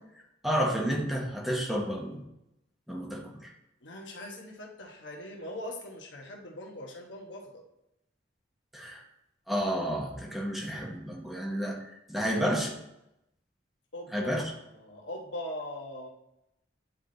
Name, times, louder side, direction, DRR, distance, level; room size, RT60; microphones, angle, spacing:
voice 1, 0.4-2.2 2.9-3.5 8.7-9.0 9.5-12.7 14.1-14.4, equal, ahead, -1 dB, 1.0 m, -31 dB
voice 2, 3.8-7.6 13.9-16.1, left 1 dB, 70° left, 1 dB, 1.2 m, -41 dB
9.2 x 3.6 x 3.9 m, 0.86 s
head